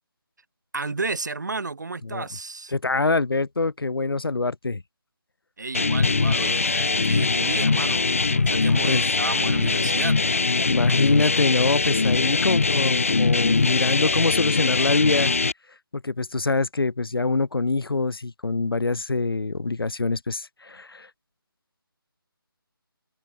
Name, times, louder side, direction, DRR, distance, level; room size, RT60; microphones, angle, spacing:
voice 1, 0.7-2.7 5.6-10.2, right 3 dB, 50° right, 2.0 m, -32 dB
voice 2, 2.7-4.8 8.8-9.1 10.7-15.3 15.9-21.1, left 3 dB, 70° left, 2.1 m, -24 dB
sound 1, 5.7-15.5, left 4 dB, 35° left, 0.7 m, -22 dB
open air
figure-of-eight pair, 180°, 13 cm